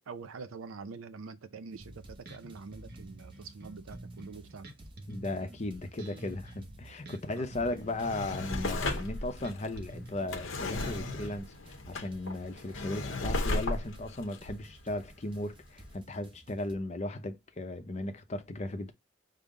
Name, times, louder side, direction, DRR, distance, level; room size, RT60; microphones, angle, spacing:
voice 1, 0.0-4.7 7.3-7.6, right 4 dB, 80° right, 0.5 m, -45 dB
sound 1, 1.7-16.8, right 1 dB, 25° right, 0.7 m, -56 dB
Bass guitar, 1.8-11.4, right 1 dB, 50° right, 1.1 m, -48 dB
voice 2, 5.1-18.9, left 2 dB, 35° left, 0.6 m, -36 dB
Drawer open or close, 7.8-15.5 15.9-16.0, left 2 dB, 65° left, 0.7 m, -35 dB
5.4 x 2.0 x 3.6 m
head